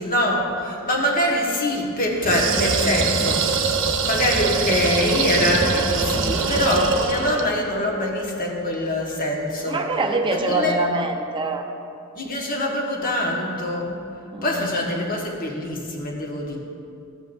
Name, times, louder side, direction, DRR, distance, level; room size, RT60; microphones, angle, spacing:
voice 1, 0.0-9.9 10.3-10.7 12.1-14.0 14.4-16.6, left 1 dB, 40° left, -1 dB, 1.4 m, -24 dB
sound 1, 2.2-7.5, right 4 dB, 60° right, 0.9 m, -23 dB
voice 2, 9.7-11.6 14.3-14.7, right 2 dB, 20° right, 3 dB, 0.7 m, -24 dB
15.5 x 8.0 x 2.6 m, 2.5 s
head